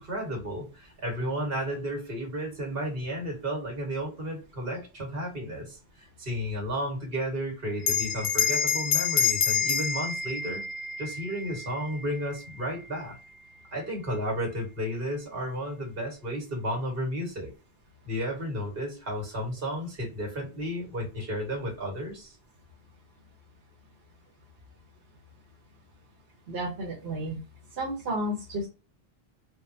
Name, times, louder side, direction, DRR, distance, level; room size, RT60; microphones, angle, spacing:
voice 1, 0.0-10.7 11.0-13.2 13.7-17.5 18.1-22.4, equal, 65° right, 1 dB, 1.6 m, -33 dB
Bell, 7.8-12.7, left 6 dB, 50° left, 0.7 m, -28 dB
voice 2, 26.5-27.4 27.7-28.7, right 1 dB, 90° right, -3 dB, 1.2 m, -32 dB
3.7 x 2.4 x 2.7 m, 0.32 s
omnidirectional pair, 1.0 m